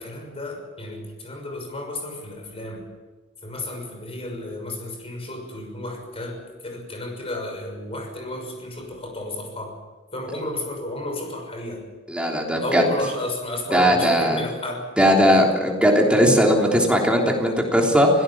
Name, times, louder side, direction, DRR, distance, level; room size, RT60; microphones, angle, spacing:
voice 1, 0.0-2.9 3.4-9.8 10.1-11.9 12.6-14.9 15.3-15.5, left 1 dB, 30° left, 3 dB, 6.3 m, -32 dB
voice 2, 12.1-12.8 13.7-14.4 15.0-18.1, equal, 5° right, 0 dB, 3.4 m, -18 dB
26.0 x 17.5 x 7.3 m, 1.2 s
head